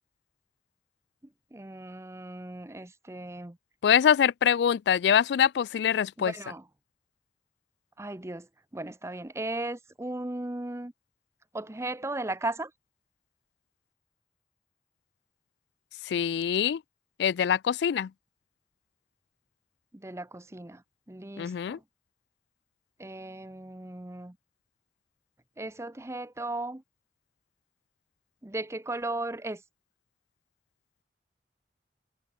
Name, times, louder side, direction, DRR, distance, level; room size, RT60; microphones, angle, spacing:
voice 1, 1.5-3.6 6.2-6.6 8.0-8.5 8.7-10.9 11.5-12.7 19.9-20.8 21.1-21.8 23.0-24.4 25.6-26.8 28.4-29.6, right 2 dB, 15° right, 0.7 m, -36 dB
voice 2, 3.8-6.3 16.1-16.8 17.2-18.1 21.4-21.8, left 8 dB, 75° left, 0.3 m, -24 dB
head